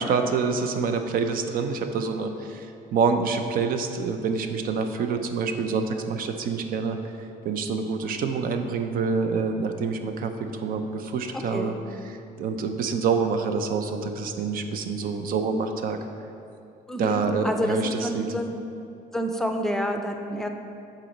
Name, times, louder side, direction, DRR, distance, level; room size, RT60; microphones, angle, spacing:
voice 1, 0.0-2.7 2.9-7.0 7.4-11.8 12.0-16.0 17.0-18.3, right 5 dB, 60° right, 6 dB, 0.6 m, -27 dB
voice 2, 16.9-18.5 19.1-20.5, equal, 5° left, 4 dB, 0.5 m, -28 dB
7.4 x 4.0 x 5.3 m, 2.6 s
cardioid pair, 110°, 17 cm